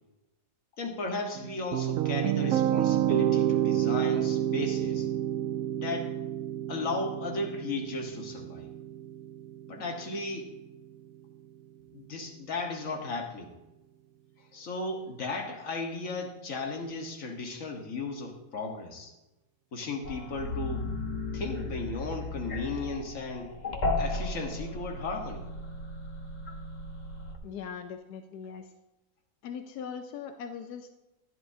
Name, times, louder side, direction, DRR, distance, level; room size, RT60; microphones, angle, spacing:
voice 1, 0.8-5.1 5.7-6.1 6.7-8.7 9.7-10.5 11.9-13.5 14.5-19.1 19.7-20.9 21.3-23.5 24.0-25.5, left 3 dB, 60° left, 2 dB, 1.8 m, -35 dB
sound 1, 1.4-10.5, right 11 dB, 70° right, 0.9 m, -29 dB
sound 2, 20.0-27.4, left 2 dB, 30° left, 1.2 m, -35 dB
voice 2, 27.4-28.7 29.4-31.0, left 7 dB, 90° left, 7 dB, 1.2 m, -40 dB
14.5 x 11.0 x 2.7 m, 1.0 s
omnidirectional pair, 1.6 m